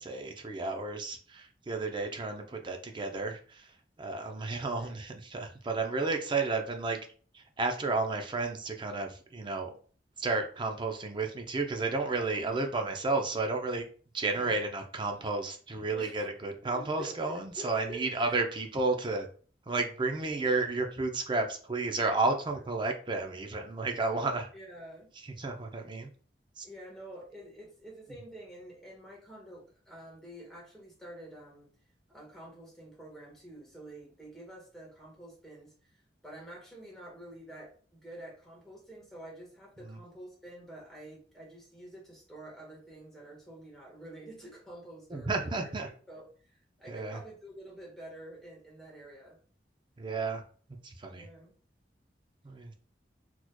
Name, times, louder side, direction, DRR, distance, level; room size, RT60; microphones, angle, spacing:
voice 1, 0.0-7.0 7.3-9.7 10.2-13.9 14.1-19.3 19.7-24.5 25.4-26.1 26.6-26.7 39.8-40.0 45.1-45.9 46.9-47.2 50.0-50.4 50.8-51.3 52.4-52.7, right 3 dB, 25° right, 4 dB, 0.5 m, -32 dB
voice 2, 4.5-5.0 12.4-12.6 14.3-14.6 15.9-16.2 16.7-18.4 24.5-25.1 26.6-31.7 32.1-35.7 36.2-45.7 46.1-49.4 51.1-51.5, right 1 dB, ahead, -4 dB, 1.4 m, -48 dB
4.1 x 2.9 x 2.2 m, 0.42 s
head